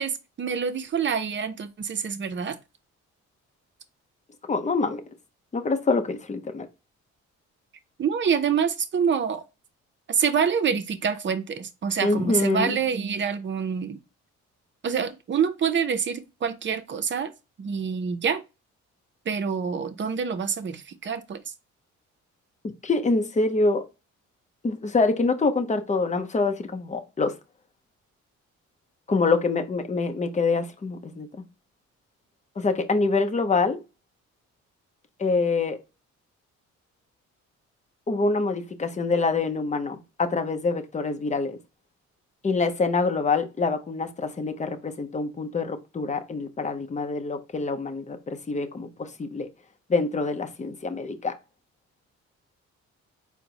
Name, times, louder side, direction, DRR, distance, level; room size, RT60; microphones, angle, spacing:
voice 1, 0.0-2.6 8.0-9.4 10.1-14.0 14.8-17.3 17.6-18.4 19.3-21.5, right 6 dB, 40° right, 0.7 m, -26 dB
voice 2, 4.5-5.0 5.5-6.7 12.0-12.8 22.8-23.8 24.6-27.3 29.1-31.3 32.6-33.8 35.2-35.8 38.1-41.6 42.4-49.5 49.9-51.3, left 3 dB, 25° left, 0.8 m, -25 dB
4.4 x 2.2 x 3.9 m
cardioid pair, 90°, 30 cm